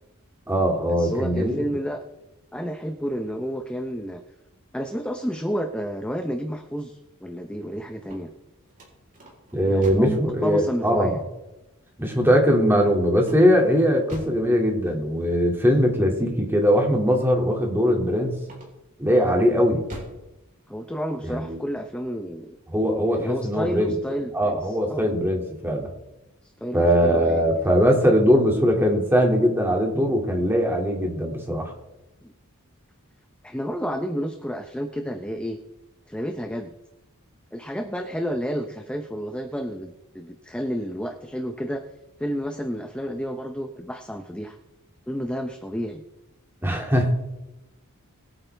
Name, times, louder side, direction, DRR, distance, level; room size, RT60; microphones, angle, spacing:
voice 1, 0.5-1.6 9.5-11.2 12.0-18.4 19.0-19.8 21.2-21.6 22.7-23.9 24.3-25.9 26.7-31.7 46.6-47.1, equal, 10° right, 1 dB, 2.3 m, -21 dB
voice 2, 1.0-2.0 2.5-4.2 4.7-8.3 9.7-11.2 19.4-19.5 20.7-22.6 23.1-25.1 26.4-27.5 32.2-32.3 33.4-35.6 36.1-36.7 37.5-41.8 42.2-44.6 45.1-46.0, equal, 5° left, 6 dB, 0.6 m, -31 dB
sound 1, 7.9-10.2 13.2-14.5 18.4-19.0 19.5-20.3, right 1 dB, 35° right, 3.9 m, -42 dB
21.5 x 8.9 x 3.4 m, 0.98 s
head